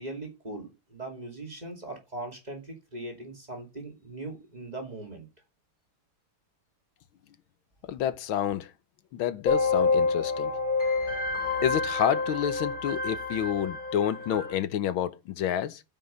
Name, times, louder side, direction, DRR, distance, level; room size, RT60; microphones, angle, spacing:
voice 1, 0.0-5.3, right 2 dB, 20° right, 2.5 m, -40 dB
voice 2, 7.9-8.7 9.1-10.5 11.6-15.8, left 10 dB, 70° left, 1.6 m, -29 dB
sound 1, 9.4-14.5, left 4 dB, 20° left, 3.6 m, -28 dB
9.3 x 5.9 x 6.4 m
omnidirectional pair, 2.4 m